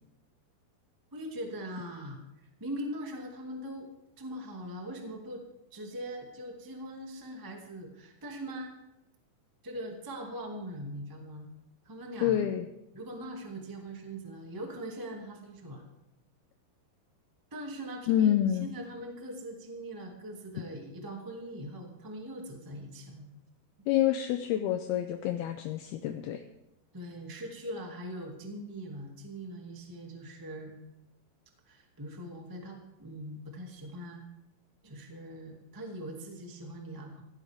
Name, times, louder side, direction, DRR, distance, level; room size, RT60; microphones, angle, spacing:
voice 1, 1.1-3.9 4.2-5.4 5.7-8.7 9.6-11.5 11.8-12.4 12.9-15.8 17.5-23.3 26.9-30.8 31.7-34.2 34.8-37.2, right 1 dB, 30° right, 1 dB, 0.4 m, -41 dB
voice 2, 12.2-12.7 18.1-18.7 23.9-26.4, left 11 dB, 80° left, 6 dB, 2.3 m, -27 dB
16.5 x 16.5 x 3.6 m, 0.91 s
omnidirectional pair, 5.1 m